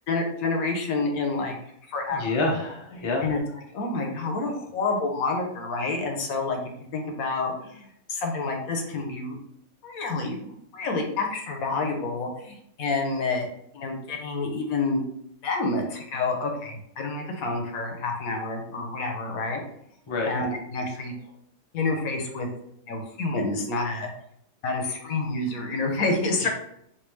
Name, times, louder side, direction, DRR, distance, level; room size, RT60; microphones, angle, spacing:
voice 1, 0.1-1.5 1.9-2.4 2.9-9.4 9.8-13.5 13.7-15.0 15.4-19.6 20.2-21.1 21.7-22.5 22.8-24.1 24.6-26.5, left 3 dB, 80° left, 2 dB, 1.1 m, -28 dB
voice 2, 2.2-3.3 20.1-20.3 26.4-26.5, left 2 dB, 50° left, -1 dB, 0.3 m, -27 dB
3.4 x 2.5 x 3.1 m, 0.73 s
omnidirectional pair, 1.5 m